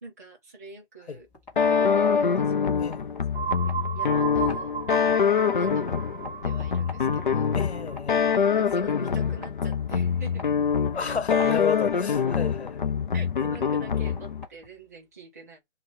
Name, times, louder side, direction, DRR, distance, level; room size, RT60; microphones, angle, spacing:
voice 1, 0.0-1.3 1.7-2.9 3.5-4.7 5.5-7.6 8.6-10.5 10.9-11.2 11.4-11.6 12.4-12.5 13.1-15.6, right 2 dB, 15° right, 0.7 m, -44 dB
sound 1, 1.2-14.9, left 3 dB, 5° left, 1.6 m, -48 dB
sound 2, 1.6-14.5, left 6 dB, 50° left, 0.5 m, -25 dB
sound 3, 3.3-9.0, right 7 dB, 60° right, 0.7 m, -35 dB
voice 2, 7.5-8.2 10.9-12.7, left 6 dB, 80° left, 1.1 m, -31 dB
2.9 x 2.8 x 3.6 m
hypercardioid pair, 170°, 32 cm